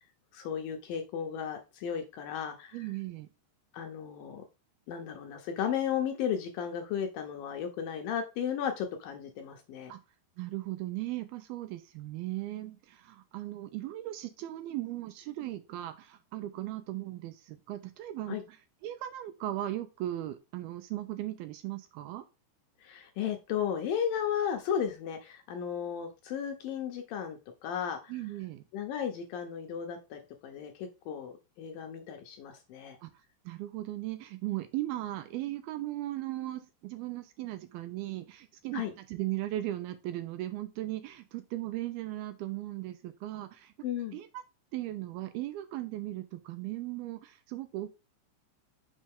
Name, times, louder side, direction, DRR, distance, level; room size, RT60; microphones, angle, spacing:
voice 1, 0.3-2.9 3.7-4.4 4.9-9.9 18.3-18.4 22.8-28.1 28.7-33.0 38.7-38.9 43.8-44.2, left 8 dB, 75° left, 5 dB, 2.3 m, -34 dB
voice 2, 2.7-3.3 9.9-10.0 10.4-18.6 18.8-22.2 28.1-28.7 33.0-43.7 44.1-44.4 44.7-47.9, right 15 dB, 80° right, 9 dB, 2.4 m, -37 dB
6.5 x 5.2 x 3.6 m, 0.28 s
omnidirectional pair, 4.7 m